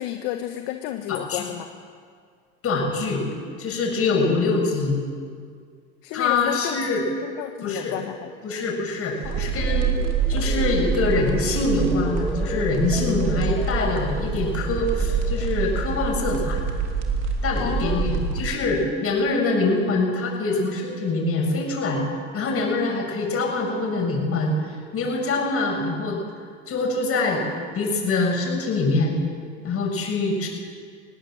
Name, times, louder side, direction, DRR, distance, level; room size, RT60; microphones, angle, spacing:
voice 1, 0.0-1.7 6.0-6.8 7.2-8.3 9.2-9.9 17.6-18.0, left 13 dB, 60° left, 6 dB, 1.5 m, -32 dB
voice 2, 1.1-1.4 2.6-3.3 3.6-5.0 6.1-7.0 7.6-7.9 8.4-10.0 10.3-16.6 17.4-22.0 22.3-26.2 26.7-27.4 27.7-29.2 29.6-30.5, left 3 dB, 40° left, 0 dB, 7.7 m, -24 dB
sound 1, 9.1-16.3 16.7-17.0, equal, ahead, 2.8 m, -36 dB
sound 2, 9.2-18.6, right 5 dB, 45° right, 3.4 m, -26 dB
21.0 x 18.0 x 7.8 m, 2.1 s
hypercardioid pair, 95°, 37 cm